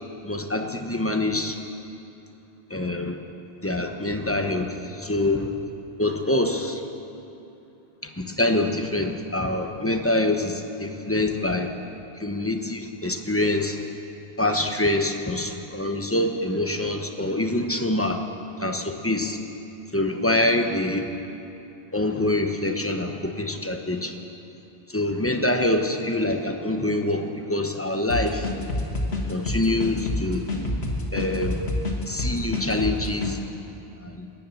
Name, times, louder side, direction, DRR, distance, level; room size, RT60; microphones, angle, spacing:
voice 1, 0.2-1.6 2.7-3.2 3.6-5.5 6.0-6.8 8.0-11.7 12.2-13.8 14.4-18.2 18.6-19.4 19.9-21.1 21.9-24.2 24.9-28.5 29.3-30.5 31.1-31.6 32.1-33.4 34.0-34.3, left 1 dB, 15° left, 4 dB, 0.9 m, -25 dB
sound 1, 28.1-33.3, left 2 dB, 75° left, 2.1 m, -27 dB
20.5 x 9.5 x 7.0 m, 2.8 s
omnidirectional pair, 1.1 m